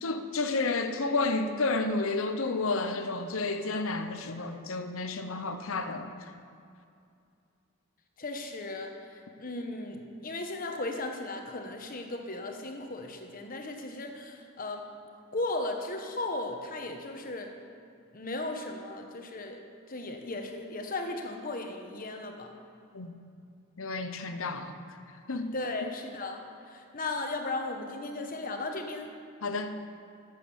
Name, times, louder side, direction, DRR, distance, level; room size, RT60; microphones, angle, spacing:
voice 1, 0.0-6.1 22.9-23.1 23.8-24.7 25.3-25.5 29.4-29.7, left 3 dB, 65° left, 8 dB, 0.8 m, -31 dB
voice 2, 8.2-14.9 15.3-17.5 18.1-19.6 19.9-22.5 25.5-26.4 26.7-29.1, left 2 dB, 40° left, 4 dB, 1.1 m, -36 dB
11.5 x 7.6 x 7.1 m, 2.5 s
head